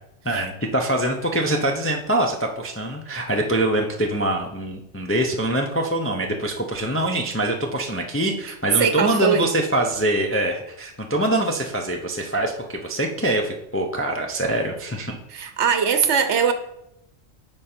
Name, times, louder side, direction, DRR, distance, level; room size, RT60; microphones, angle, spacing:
voice 1, 0.2-15.2, right 1 dB, 15° left, 2 dB, 0.4 m, -24 dB
voice 2, 8.8-9.5 15.3-16.5, right 7 dB, 60° right, 9 dB, 1.0 m, -20 dB
8.8 x 5.2 x 4.4 m, 0.83 s
omnidirectional pair, 1.4 m